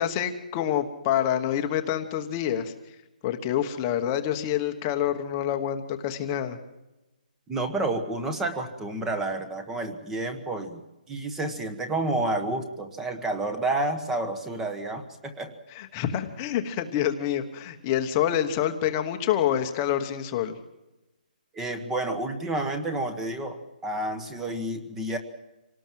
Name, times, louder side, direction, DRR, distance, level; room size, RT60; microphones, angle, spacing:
voice 1, 0.0-2.7 3.2-6.6 15.7-20.6, left 10 dB, 15° left, 6 dB, 1.2 m, -27 dB
voice 2, 7.5-10.8 11.1-15.5 21.5-25.2, right 2 dB, 5° right, 8 dB, 1.3 m, -30 dB
26.5 x 19.0 x 7.6 m, 0.97 s
hypercardioid pair, 180°, 5 cm